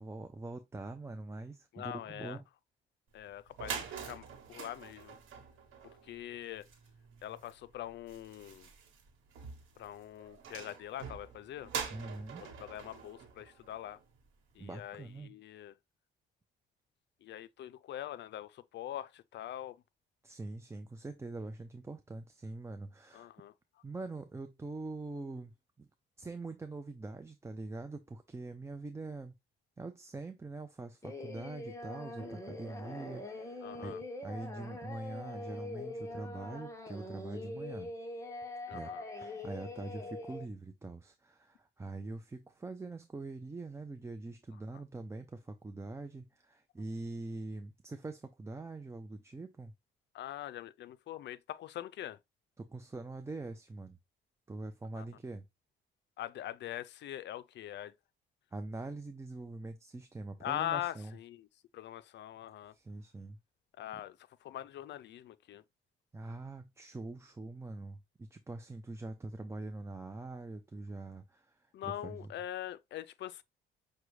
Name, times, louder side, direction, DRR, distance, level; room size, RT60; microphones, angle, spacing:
voice 1, 0.0-2.5 11.9-12.5 14.6-15.4 20.2-23.3 23.8-25.5 25.8-25.9 26.2-29.3 29.8-37.9 38.7-49.7 52.6-54.0 54.5-55.4 58.5-61.1 62.7-63.4 66.1-72.3, right 2 dB, 15° right, 0.4 m, -44 dB
voice 2, 1.7-2.4 3.1-5.2 6.0-6.7 7.2-8.7 9.8-11.7 12.4-14.0 14.6-15.7 17.2-19.8 23.1-23.5 33.6-34.0 38.7-39.0 50.1-52.2 55.0-55.1 56.2-57.9 60.4-61.5 61.7-62.7 63.8-65.6 71.7-73.4, left 12 dB, 60° left, 0.4 m, -43 dB
sound 1, 3.2-3.3 3.5-14.3, right 7 dB, 90° right, 1.1 m, -45 dB
Singing, 31.0-40.5, left 2 dB, 15° left, 1.0 m, -43 dB
6.0 x 2.3 x 3.1 m
cardioid pair, 90°, 20 cm